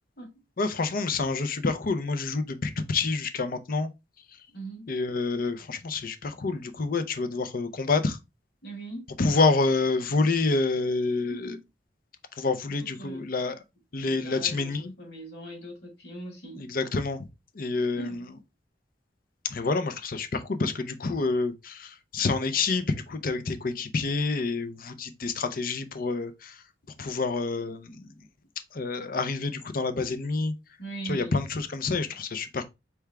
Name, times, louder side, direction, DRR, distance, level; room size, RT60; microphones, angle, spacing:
voice 1, 0.6-3.9 4.9-8.2 9.2-11.6 12.4-13.6 13.9-14.9 16.6-17.3 17.5-18.4 19.4-26.6 27.0-28.1 28.7-30.5 31.0-32.6, left 3 dB, 55° left, 0.6 m, -28 dB
voice 2, 4.5-4.9 8.6-9.1 11.2-11.6 12.7-13.3 14.0-16.7 18.0-18.3 30.8-31.4, right 2 dB, 75° left, 2.0 m, -40 dB
4.5 x 3.5 x 3.4 m
head